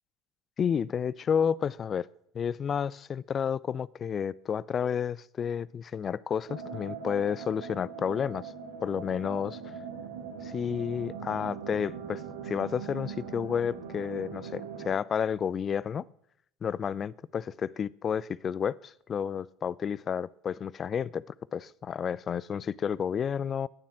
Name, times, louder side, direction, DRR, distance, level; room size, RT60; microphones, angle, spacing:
voice 1, 0.6-2.1 2.3-8.5 8.8-9.6 10.4-16.0 16.6-21.2 21.5-23.7, left 7 dB, 35° left, 0.5 m, -31 dB
sound 1, 6.5-14.9, right 6 dB, 75° right, 2.3 m, -41 dB
21.0 x 7.3 x 7.7 m
hypercardioid pair, 70°, 0 cm